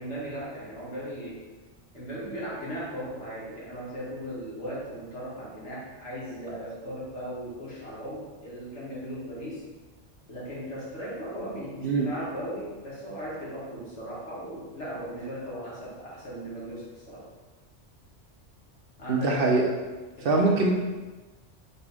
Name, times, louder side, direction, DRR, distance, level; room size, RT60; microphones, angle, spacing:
voice 1, 0.0-1.4 1.9-9.6 10.3-17.3 19.0-19.8 20.2-20.6, equal, 75° left, -6 dB, 1.6 m, -37 dB
voice 2, 19.1-19.6 20.2-20.7, right 3 dB, 60° right, 0 dB, 0.7 m, -22 dB
5.2 x 2.6 x 3.4 m, 1.2 s
omnidirectional pair, 1.2 m